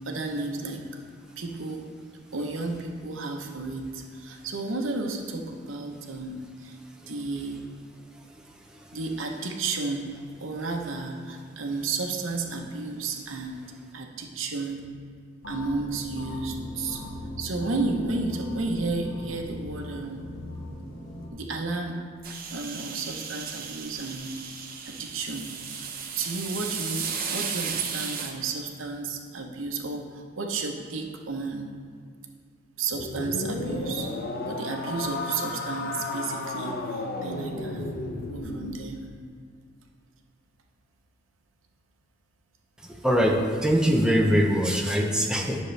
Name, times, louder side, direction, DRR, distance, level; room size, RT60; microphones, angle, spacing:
voice 1, 0.0-0.8 1.4-1.9 2.3-6.8 7.1-7.6 8.9-10.1 10.4-13.6 13.9-14.8 15.5-17.0 17.4-20.2 21.3-22.0 22.5-24.3 24.8-25.8 26.2-31.7 32.8-34.1 34.5-38.0 38.3-39.0, right 3 dB, 85° right, 2 dB, 0.9 m, -32 dB
sound 1, 15.4-21.3, left 1 dB, 80° left, 1.5 m, -39 dB
sound 2, 22.2-28.3, right 6 dB, 50° right, 0.7 m, -35 dB
sound 3, 32.9-38.8, left 2 dB, 50° left, 0.7 m, -33 dB
voice 2, 43.0-43.4 43.6-45.6, equal, 5° right, 0 dB, 0.7 m, -22 dB
10.5 x 6.5 x 3.3 m, 2.1 s
head